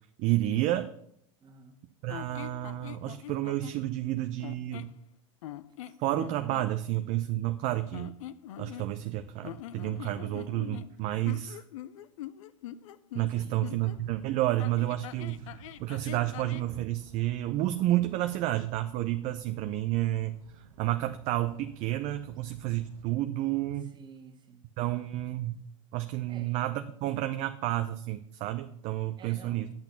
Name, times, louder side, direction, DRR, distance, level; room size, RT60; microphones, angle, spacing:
voice 1, 0.2-0.9 2.0-4.9 6.0-8.1 8.6-11.6 13.1-15.5 15.8-23.9 24.8-25.6 25.9-29.7, right 15 dB, 45° right, 0.6 m, -30 dB
voice 2, 1.4-1.8 13.4-13.6 23.8-24.7 26.3-26.6 29.2-29.7, right 5 dB, 25° right, 1.8 m, -51 dB
sound 1, 2.1-3.8 4.4-5.0 5.4-6.7 7.9-9.1 9.4-14.0 14.6-16.7, left 12 dB, 70° left, 0.6 m, -43 dB
sound 2, 13.7-23.0, right 5 dB, 90° right, 0.9 m, -54 dB
8.8 x 6.0 x 7.1 m
hypercardioid pair, 110°, 17 cm